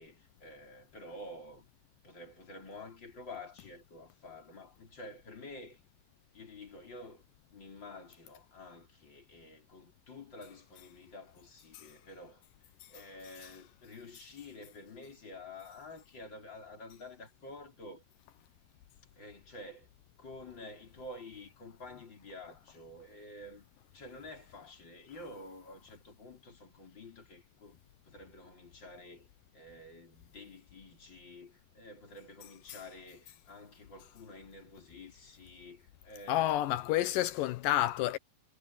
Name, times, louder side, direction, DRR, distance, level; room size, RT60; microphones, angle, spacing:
voice 1, 0.0-1.7 2.0-5.8 6.3-7.2 7.5-12.5 12.9-18.0 19.2-19.9 20.2-23.7 23.9-29.3 29.5-37.1, left 2 dB, 30° left, 5.1 m, -50 dB
voice 2, 36.3-38.2, left 14 dB, 85° left, 2.5 m, -29 dB
omnidirectional pair, 3.9 m